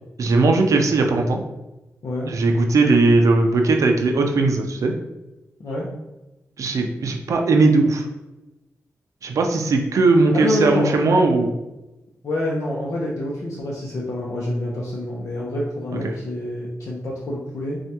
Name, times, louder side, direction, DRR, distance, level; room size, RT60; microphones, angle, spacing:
voice 1, 0.2-1.4 2.3-4.9 6.6-8.1 9.2-11.5, right 3 dB, 75° right, 3 dB, 0.4 m, -18 dB
voice 2, 2.0-2.4 5.6-5.9 10.3-11.0 12.2-17.8, left 1 dB, 60° left, -5 dB, 0.7 m, -27 dB
4.4 x 2.3 x 2.8 m, 1.0 s
cardioid pair, 80°, 6 cm